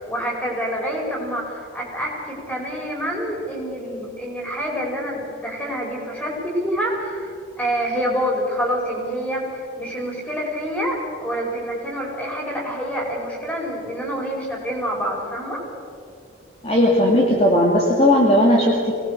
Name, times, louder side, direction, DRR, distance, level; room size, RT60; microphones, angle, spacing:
voice 1, 0.0-11.0 11.2-15.6, equal, 10° left, -2 dB, 5.2 m, -27 dB
voice 2, 16.6-19.0, left 1 dB, 30° left, -2 dB, 2.2 m, -17 dB
24.5 x 19.0 x 6.7 m, 2.4 s
head